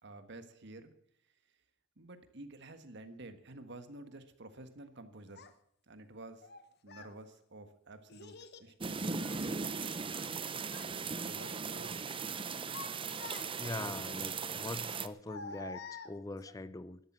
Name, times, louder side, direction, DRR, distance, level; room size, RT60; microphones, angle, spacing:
voice 1, 0.0-0.9 2.0-5.5 5.9-6.5 6.8-9.1 11.2-12.0, right 2 dB, 60° right, 9 dB, 1.5 m, -50 dB
Child speech kid speaking, 5.3-5.5 6.4-7.2 8.1-8.7 9.1-10.4 10.6-10.9 11.4-12.0 12.4-13.8 14.8-16.5, left 4 dB, 55° left, 1.2 m, -49 dB
sound 1, 8.8-15.1, right 5 dB, 25° right, 0.6 m, -38 dB
voice 2, 13.6-17.0, left 2 dB, 15° left, 15 dB, 0.5 m, -42 dB
12.5 x 11.5 x 7.4 m, 0.67 s
head